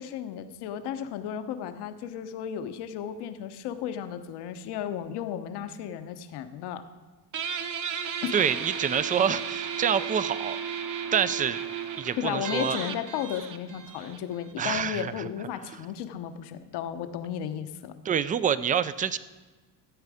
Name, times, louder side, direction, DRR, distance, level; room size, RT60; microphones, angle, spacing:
voice 1, 0.0-6.8 8.2-8.3 12.2-17.9, left 9 dB, 70° left, 10 dB, 1.0 m, -34 dB
Guitar, 7.3-14.5, right 7 dB, 50° right, 1.1 m, -34 dB
voice 2, 8.3-10.6 11.1-11.6 12.0-12.8 14.6-15.3 18.0-19.2, right 8 dB, 20° right, 15 dB, 0.3 m, -27 dB
15.0 x 8.2 x 4.9 m, 1.3 s
cardioid pair, 120°, 42 cm